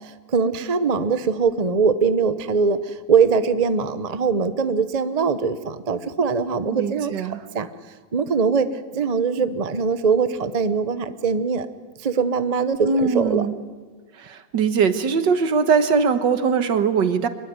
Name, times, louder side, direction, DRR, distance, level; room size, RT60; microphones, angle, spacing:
voice 1, 0.0-7.3 7.5-7.7 8.1-8.7 8.9-11.7 12.0-13.4, right 5 dB, 40° right, 11 dB, 0.5 m, -22 dB
voice 2, 6.7-7.5 12.8-13.5 14.1-17.3, right 5 dB, 60° right, 10 dB, 1.9 m, -21 dB
24.0 x 21.5 x 9.6 m, 1.4 s
omnidirectional pair, 2.2 m